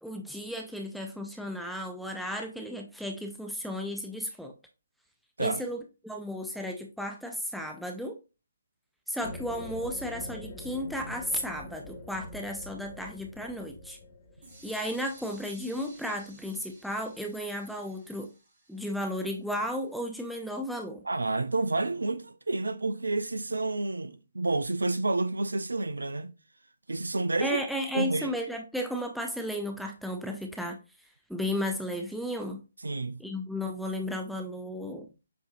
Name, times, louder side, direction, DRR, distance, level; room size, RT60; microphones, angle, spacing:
voice 1, 0.0-4.5 5.4-8.2 9.1-14.0 14.6-18.3 18.7-21.0 27.4-30.8 31.3-32.6 33.2-35.1, equal, ahead, 0.4 m, -34 dB
sound 1, 9.2-16.5, left 2 dB, 30° left, 1.0 m, -45 dB
sound 2, 14.4-20.2, right 2 dB, 35° right, 2.5 m, -56 dB
voice 2, 21.0-26.3 26.9-27.6 27.9-28.3 32.8-33.2, right 2 dB, 70° right, 0.4 m, -29 dB
7.4 x 2.6 x 2.5 m
figure-of-eight pair, 135°, 0 cm